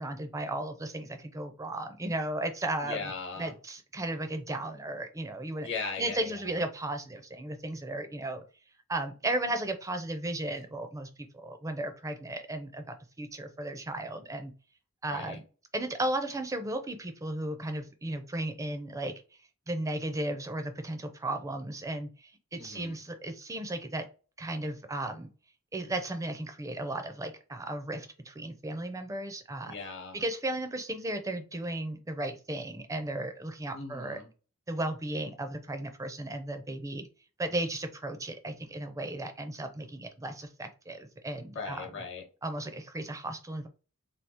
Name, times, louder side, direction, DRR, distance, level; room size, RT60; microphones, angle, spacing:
voice 1, 0.0-3.1 3.4-5.7 6.0-8.4 8.9-12.9 13.2-14.5 15.0-15.4 15.7-19.1 19.7-24.1 24.4-25.3 25.7-29.7 30.1-34.2 34.7-37.1 37.4-41.9 42.4-43.7, right 1 dB, 15° right, 7 dB, 0.4 m, -35 dB
voice 2, 2.8-3.5 5.6-6.4 15.1-15.4 22.5-23.0 29.6-30.2 33.7-34.3 41.5-42.2, left 4 dB, 60° left, 3 dB, 1.0 m, -38 dB
3.4 x 2.3 x 2.8 m, 0.36 s
head